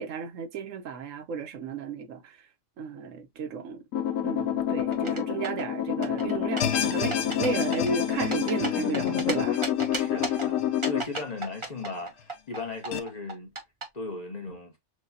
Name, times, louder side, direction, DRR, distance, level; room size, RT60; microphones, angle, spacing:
voice 1, 0.0-2.2 2.8-3.8 4.2-9.6, right 5 dB, 75° right, 1.1 m, -33 dB
sound 1, 3.9-11.0, left 10 dB, 80° left, 1.1 m, -28 dB
sound 2, 4.9-5.7 6.0-6.8 7.1-7.5 7.7-9.3 9.6-10.5 10.8-13.8, right 3 dB, 25° right, 0.7 m, -33 dB
sound 3, 6.6-11.8 12.2-12.3 12.9-13.0, left 8 dB, 60° left, 0.8 m, -34 dB
voice 2, 10.0-13.5 13.9-14.7, left 3 dB, 35° left, 0.9 m, -37 dB
6.3 x 2.3 x 2.6 m
omnidirectional pair, 1.4 m